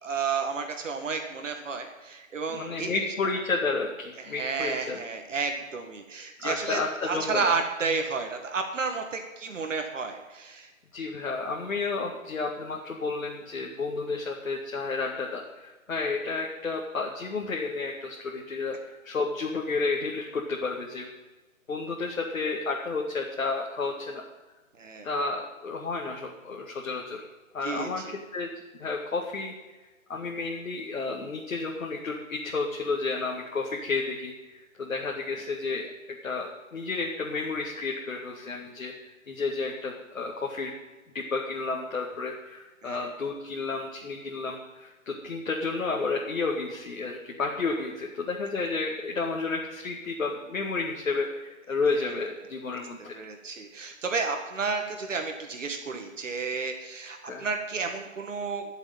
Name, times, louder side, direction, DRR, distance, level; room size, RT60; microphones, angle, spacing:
voice 1, 0.0-2.9 4.2-10.7 24.8-25.1 27.6-28.1 42.8-43.1 51.9-52.2 53.1-58.7, right 4 dB, 65° right, 5 dB, 2.0 m, -32 dB
voice 2, 2.5-5.0 6.4-7.4 10.9-21.1 21.7-24.2 25.0-27.2 27.5-28.0 28.3-28.5 28.8-29.5 30.1-35.9 36.2-38.9 39.3-40.7 41.1-53.1 57.2-57.5, left 3 dB, 70° left, -1 dB, 2.2 m, -31 dB
13.5 x 7.3 x 9.1 m, 1.2 s
hypercardioid pair, 150°, 41 cm